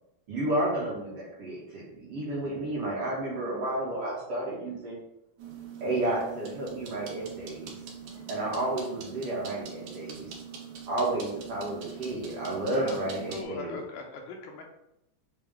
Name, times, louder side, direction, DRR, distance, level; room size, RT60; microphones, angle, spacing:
voice 1, 0.3-5.0 5.8-7.7 8.3-10.3 10.9-13.8, right 1 dB, 60° right, -6 dB, 1.6 m, -31 dB
sound 1, 5.4-13.4, right 7 dB, 85° right, 2.4 m, -43 dB
voice 2, 8.0-8.5 12.7-14.6, left 4 dB, 85° left, 2 dB, 2.3 m, -42 dB
6.7 x 2.2 x 3.6 m, 0.86 s
omnidirectional pair, 3.6 m